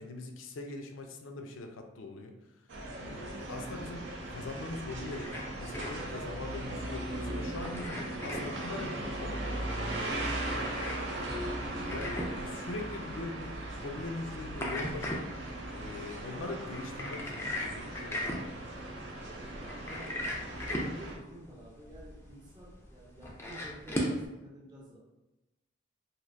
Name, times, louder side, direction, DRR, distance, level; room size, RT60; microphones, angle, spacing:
voice 1, 0.0-2.4 3.0-5.3 5.6-9.7 11.8-15.2 15.7-18.4, left 2 dB, 85° left, 4 dB, 0.5 m, -42 dB
sound 1, 2.7-21.2, right 1 dB, 70° right, 0.5 m, -38 dB
sound 2, 4.8-24.3, left 1 dB, 15° left, 0.4 m, -40 dB
voice 2, 10.9-11.8 19.2-20.2 20.6-25.0, right 1 dB, 20° right, -5 dB, 0.7 m, -51 dB
3.2 x 2.6 x 2.5 m, 1.0 s
head